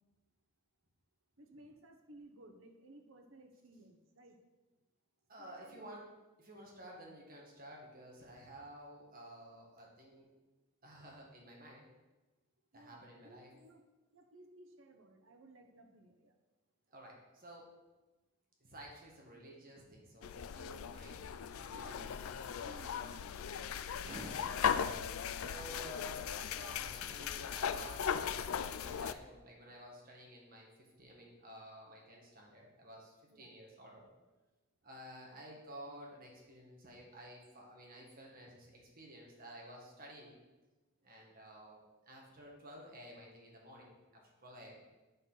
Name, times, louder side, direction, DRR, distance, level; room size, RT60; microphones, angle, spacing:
voice 1, 1.4-4.4 5.4-5.9 12.7-13.8 14.1-16.3 21.7-24.0 33.3-33.5, right 1 dB, 70° right, 4 dB, 1.0 m, -59 dB
voice 2, 5.3-6.1 6.4-10.3 10.8-11.8 12.7-13.5 16.9-17.7 18.6-21.2 21.6-22.0 22.6-22.9 24.0-24.7 25.4-30.7 31.0-34.1 34.8-40.4 41.0-44.8, equal, 45° right, -2 dB, 1.8 m, -52 dB
sound 1, 20.2-29.1, left 7 dB, 85° left, 0.4 m, -38 dB
8.8 x 6.5 x 4.0 m, 1.1 s
head